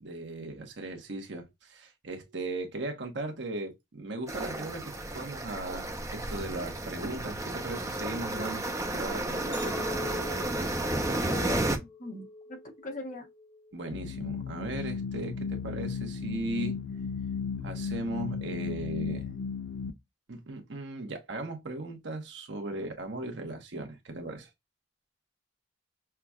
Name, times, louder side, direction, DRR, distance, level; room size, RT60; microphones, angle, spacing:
voice 1, 0.0-8.6 8.9-10.0 13.7-16.8 17.6-19.3 20.3-24.5, right 2 dB, 70° right, 1.0 m, -37 dB
sound 1, 4.3-11.8, right 1 dB, 15° right, 0.6 m, -32 dB
Chink clink, 9.5-13.9 14.3-14.8, left 2 dB, 10° left, 1.3 m, -43 dB
voice 2, 11.3-13.3, left 2 dB, 45° left, 1.1 m, -41 dB
sound 2, 13.9-19.9, left 6 dB, 65° left, 0.5 m, -35 dB
5.7 x 2.3 x 2.3 m
head